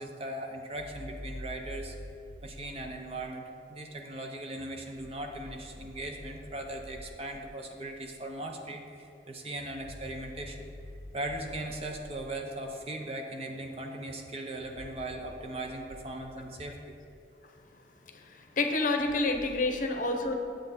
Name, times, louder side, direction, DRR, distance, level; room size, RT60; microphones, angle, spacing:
voice 1, 0.0-2.0 2.4-10.7 11.1-17.0, right 1 dB, 30° right, 3 dB, 0.8 m, -39 dB
sound 1, 0.8-3.1 5.0-7.5 9.8-12.4 14.6-17.2 19.0-19.7, left 1 dB, 20° left, 1.2 m, -47 dB
voice 2, 18.0-20.3, left 2 dB, 45° left, 4 dB, 0.8 m, -29 dB
9.2 x 7.9 x 4.2 m, 2.6 s
head